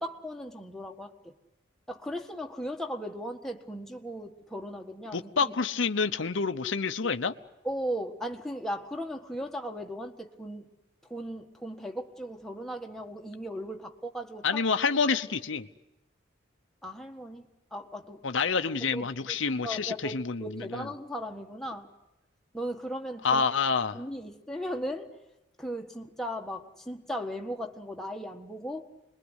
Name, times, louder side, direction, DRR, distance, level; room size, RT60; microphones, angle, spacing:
voice 1, 0.0-1.3 1.9-5.5 7.6-10.7 11.1-14.6 16.8-17.5 17.7-18.2 18.9-19.4 19.6-21.9 22.5-23.4 23.9-25.1 25.6-28.9, equal, ahead, 1 dB, 1.5 m, -37 dB
voice 2, 5.1-7.3 14.4-15.7 18.2-20.9 23.2-24.0, left 5 dB, 70° left, 8 dB, 0.9 m, -28 dB
27.0 x 21.5 x 8.1 m, 0.97 s
head